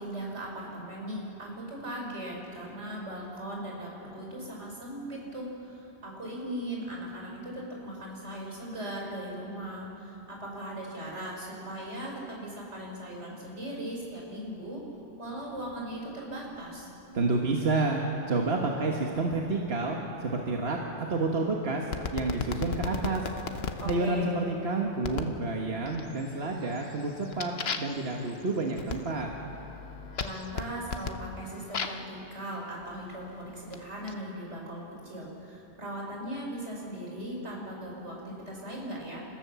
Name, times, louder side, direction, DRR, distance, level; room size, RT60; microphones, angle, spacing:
voice 1, 0.0-14.8 15.2-16.9 23.8-24.5 30.2-39.2, right 1 dB, 85° right, -2 dB, 5.5 m, -38 dB
sound 1, 15.5-27.0 29.7-31.1, left 1 dB, 25° left, 3.1 m, -52 dB
voice 2, 17.1-18.0 18.3-23.3 23.8-27.5 27.8-29.3, right 3 dB, 60° right, 0 dB, 1.7 m, -29 dB
sound 2, 21.9-24.0 25.0-25.4 25.8-26.3 26.7-32.1 32.9-34.1, left 5 dB, 65° left, 1.2 m, -36 dB
29.5 x 15.5 x 7.0 m, 3.0 s
omnidirectional pair, 1.2 m